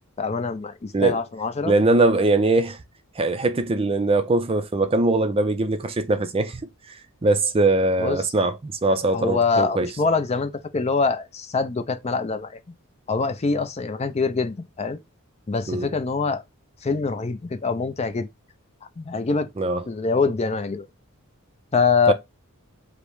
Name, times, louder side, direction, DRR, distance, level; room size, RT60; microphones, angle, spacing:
voice 1, 0.2-1.7 8.0-8.2 9.1-12.5 13.1-15.0 15.5-16.4 16.8-18.3 19.0-19.5 19.9-20.8 21.7-22.1, left 4 dB, 30° left, 0.5 m, -24 dB
voice 2, 1.7-2.8 3.2-6.6 6.9-9.9 15.7-15.9 19.6-19.9 22.1-22.2, right 2 dB, 25° right, 0.5 m, -21 dB
5.2 x 2.1 x 4.6 m
head